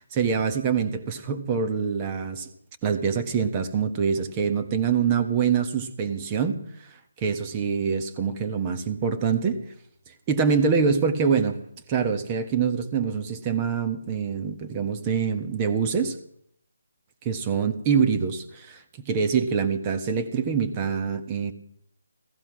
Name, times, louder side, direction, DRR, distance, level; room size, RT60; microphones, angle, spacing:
voice 1, 0.0-2.5 2.8-9.6 10.3-11.6 11.9-16.2 17.2-21.5, right 6 dB, 20° right, 7 dB, 1.5 m, -25 dB
15.5 x 14.5 x 6.2 m, 0.67 s
figure-of-eight pair, 150°, 0 cm